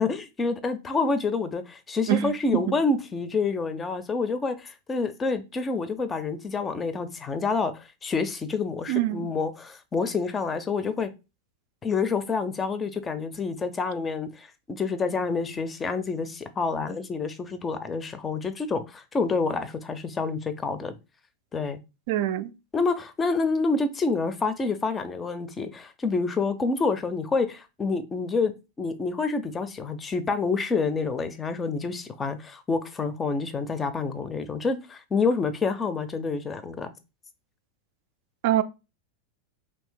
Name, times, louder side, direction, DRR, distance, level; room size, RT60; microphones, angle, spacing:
voice 1, 0.0-11.1 11.8-20.9 21.5-21.8 22.7-36.9, left 4 dB, 20° left, 0.5 m, -28 dB
voice 2, 2.1-2.8 8.9-9.3 22.1-22.5 38.4-38.6, right 13 dB, 60° right, 0.3 m, -25 dB
2.7 x 2.6 x 3.6 m
hypercardioid pair, 115°, 0 cm